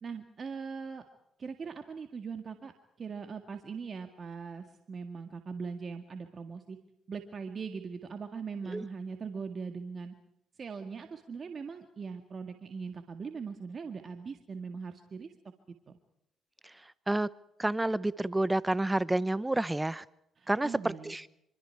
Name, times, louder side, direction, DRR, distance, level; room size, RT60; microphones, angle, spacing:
voice 1, 0.0-1.0 1.4-2.7 3.0-6.8 7.1-10.1 10.6-15.3 15.9-16.0 20.4-21.1, right 5 dB, 45° right, 6 dB, 1.9 m, -40 dB
voice 2, 17.6-20.0 20.5-21.2, right 2 dB, 15° right, 18 dB, 0.9 m, -29 dB
25.5 x 25.5 x 4.7 m, 0.78 s
supercardioid pair, 65°, 0 cm